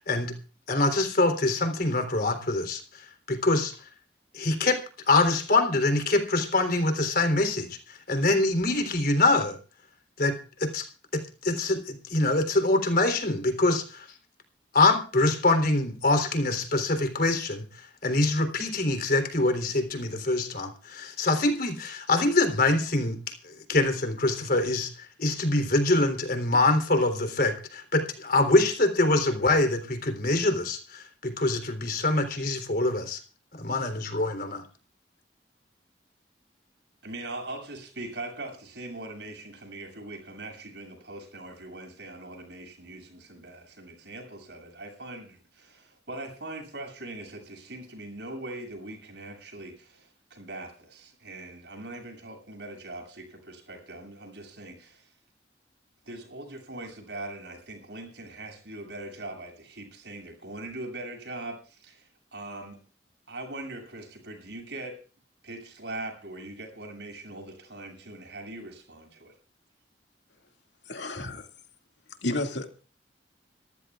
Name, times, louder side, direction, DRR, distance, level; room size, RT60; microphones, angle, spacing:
voice 1, 0.7-3.8 4.3-4.8 5.1-9.6 10.2-10.3 10.6-10.9 11.1-14.1 14.7-33.2 33.5-34.7, left 2 dB, 55° left, 3.6 m, -25 dB
voice 2, 37.0-55.1 56.1-62.8 63.3-65.0 65.4-69.3, right 2 dB, 75° right, 7.8 m, -41 dB
voice 3, 70.9-71.5 72.2-72.8, left 2 dB, 80° left, 2.3 m, -31 dB
26.0 x 14.5 x 2.5 m
head